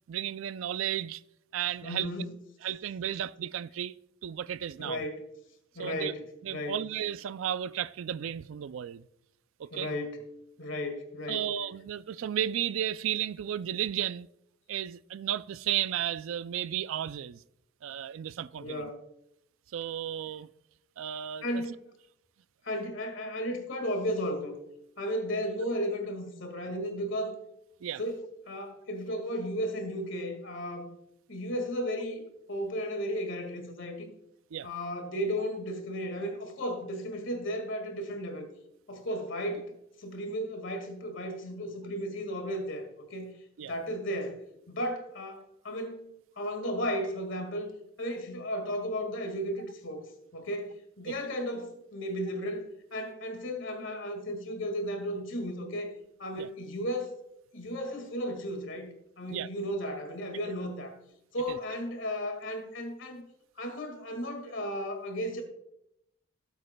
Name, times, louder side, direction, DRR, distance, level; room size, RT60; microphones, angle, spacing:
voice 1, 0.1-1.2 1.5-2.1 2.6-3.9 4.2-5.0 5.8-6.1 6.4-9.1 9.6-9.9 11.3-14.3 14.7-17.4 17.8-18.9 19.7-20.5 21.0-21.6 27.8-28.0 34.5-34.7 43.6-43.7 51.0-51.2 56.4-56.5 59.3-59.5 61.5-61.6, right 10 dB, 70° right, 0.3 m, -33 dB
voice 2, 1.8-2.3 4.8-5.2 5.8-6.2 6.5-6.8 9.7-10.2 10.6-11.5 18.6-19.1 21.4-21.8 22.6-24.6 25.0-27.4 28.0-30.9 31.3-34.1 34.6-38.5 38.9-39.7 40.0-43.3 43.6-44.4 44.7-47.7 48.0-55.9 56.2-57.1 57.5-58.9 59.2-60.9 61.3-63.3 63.6-65.4, equal, 65° left, 1.9 m, -34 dB
17.5 x 8.2 x 2.2 m
head